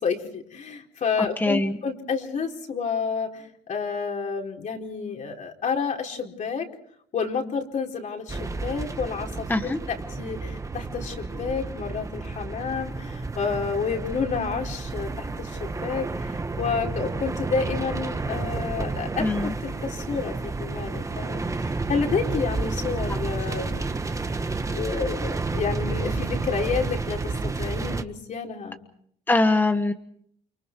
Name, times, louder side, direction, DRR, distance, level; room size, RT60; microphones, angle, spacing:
voice 1, 0.0-6.6 7.1-23.9 24.7-27.3 27.6-28.8, left 5 dB, 45° left, 1 dB, 4.5 m, -30 dB
voice 2, 1.4-1.7 9.5-9.8 19.2-19.5 23.1-23.2 29.3-29.9, left 2 dB, 10° left, 7 dB, 1.4 m, -22 dB
sound 1, 8.3-28.0, right 3 dB, 20° right, 1.5 m, -31 dB
30.0 x 24.5 x 4.7 m, 0.66 s
cardioid pair, 110°, 17 cm